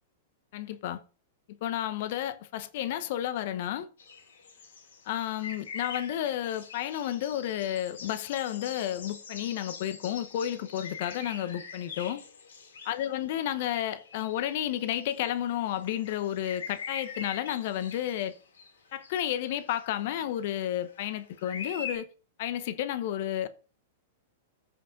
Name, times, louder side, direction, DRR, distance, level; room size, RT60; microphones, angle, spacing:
voice 1, 0.5-1.0 1.5-3.9 5.1-12.2 12.8-18.4 18.9-22.1 22.4-23.5, left 11 dB, 55° left, 0.8 m, -32 dB
sound 1, 4.0-15.4 15.7-19.8 20.4-21.1 21.4-22.0, left 5 dB, 70° left, 2.4 m, -43 dB
14.0 x 5.6 x 2.5 m
figure-of-eight pair, 100°, 0 cm